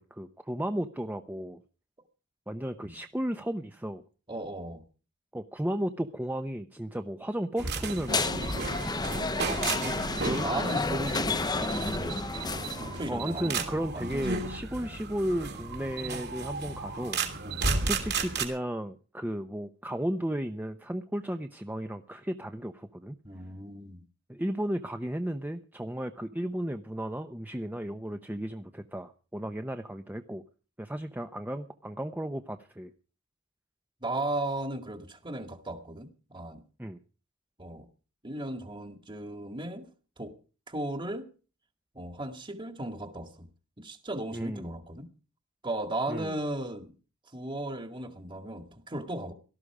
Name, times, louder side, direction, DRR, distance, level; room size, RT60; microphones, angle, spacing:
voice 1, 0.0-1.6 2.5-4.0 5.3-8.3 10.2-10.5 13.1-17.2 17.8-23.2 24.3-30.4 30.8-32.9 36.8-37.0 44.3-44.7 46.1-46.4, equal, 10° right, 0.8 m, -34 dB
voice 2, 4.3-4.8 9.8-12.2 12.5-14.5 14.8-15.0 17.4-17.7 23.2-24.0 34.0-36.6 37.6-37.9 38.2-39.9 40.2-40.3 40.7-41.3 41.9-43.5 43.8-45.1 45.6-46.9 47.3-49.3, right 1 dB, 25° right, 2.0 m, -36 dB
sound 1, 7.6-18.5, right 4 dB, 60° right, 3.0 m, -34 dB
sound 2, 8.1-13.1, left 3 dB, 20° left, 0.9 m, -31 dB
18.0 x 13.0 x 4.9 m
head